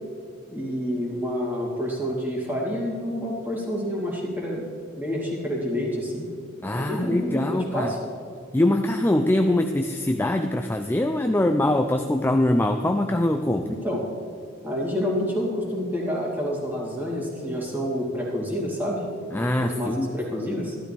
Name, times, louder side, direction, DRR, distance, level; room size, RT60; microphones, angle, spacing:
voice 1, 0.5-4.7 5.0-6.3 6.7-8.0 13.7-14.1 14.6-19.0 19.6-20.8, equal, 10° right, -4 dB, 2.5 m, -28 dB
voice 2, 6.6-7.9 8.5-13.8 19.3-20.1, left 1 dB, 10° left, 5 dB, 0.4 m, -23 dB
13.5 x 12.0 x 3.4 m, 2.4 s
head